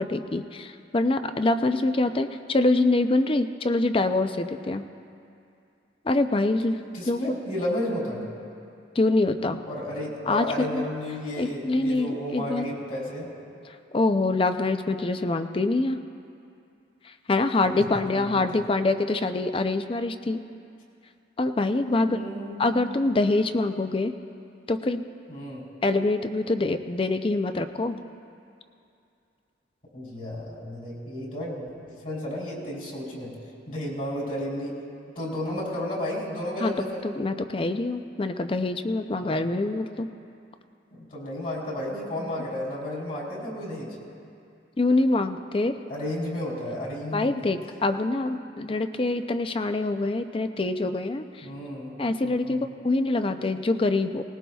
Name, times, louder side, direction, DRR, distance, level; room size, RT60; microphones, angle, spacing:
voice 1, 0.0-4.8 6.0-6.8 7.1-7.3 9.0-9.6 10.3-10.8 11.4-12.7 13.9-16.0 17.1-20.4 21.4-22.2 22.6-24.1 24.7-25.0 25.8-28.0 36.6-36.7 37.0-40.1 44.8-45.8 47.1-51.5 52.0-54.2, left 2 dB, 30° left, 9 dB, 0.5 m, -25 dB
voice 2, 6.9-8.2 9.7-13.3 18.0-18.4 21.9-22.8 25.3-25.7 29.9-33.3 33.7-34.8 35.1-37.0 39.1-39.6 40.9-43.9 45.9-47.3 51.4-52.0 52.2-52.7, left 1 dB, 50° left, -3 dB, 3.5 m, -33 dB
20.0 x 19.0 x 2.3 m, 2.5 s
head